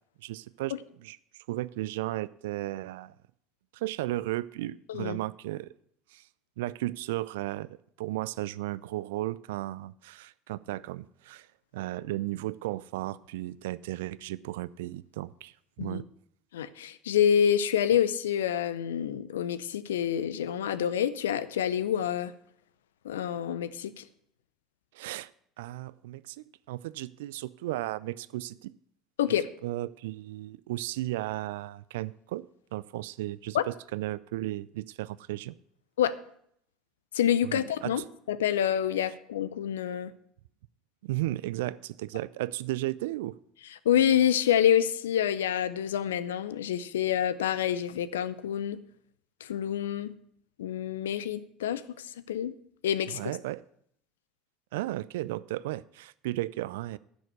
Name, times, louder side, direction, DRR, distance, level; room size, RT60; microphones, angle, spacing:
voice 1, 0.2-3.1 3.7-5.7 6.1-6.2 6.6-7.7 8.0-11.5 11.7-16.0 24.9-25.3 25.6-28.7 29.6-32.5 32.7-35.6 37.4-38.0 41.0-43.3 53.1-53.6 54.7-57.0, right 16 dB, 70° right, 0.4 m, -35 dB
voice 2, 16.5-22.3 23.0-24.0 29.2-29.5 33.5-33.6 36.0-36.2 37.1-38.0 38.3-40.1 43.8-48.8 49.4-50.1 50.6-52.6 52.8-53.2, left 9 dB, 75° left, 0.6 m, -27 dB
10.5 x 6.3 x 8.0 m
figure-of-eight pair, 65°, 0 cm